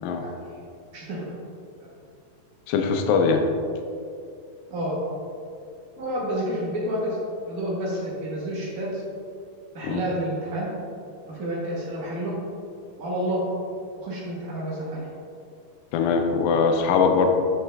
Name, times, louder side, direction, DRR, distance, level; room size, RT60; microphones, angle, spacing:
voice 1, 0.2-0.6 0.9-1.3 4.7-5.0 6.0-7.2 7.5-9.0 9.7-10.7 11.3-12.3 13.0-13.4 14.0-15.1, equal, 80° right, -6 dB, 0.8 m, -29 dB
voice 2, 2.7-3.4 9.8-10.0 15.9-17.3, left 5 dB, 85° left, 4 dB, 2.5 m, -21 dB
8.0 x 6.0 x 3.4 m, 2.4 s
omnidirectional pair, 4.1 m